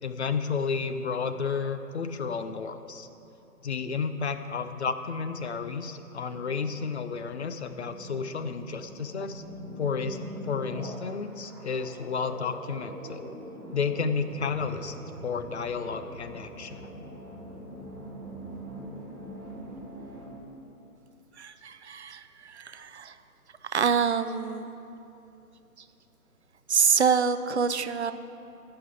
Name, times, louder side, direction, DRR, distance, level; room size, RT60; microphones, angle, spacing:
voice 1, 0.0-3.1 3.6-9.4 9.8-10.2 10.4-13.2 13.7-15.0 15.2-16.9, left 5 dB, 45° left, 9 dB, 0.6 m, -31 dB
sound 1, 4.6-20.4, equal, 10° right, 1.4 m, -43 dB
voice 2, 21.4-23.2 23.6-24.7 26.7-28.1, right 6 dB, 50° right, 11 dB, 0.4 m, -26 dB
11.5 x 5.7 x 8.2 m, 2.8 s
hypercardioid pair, 165°, 46 cm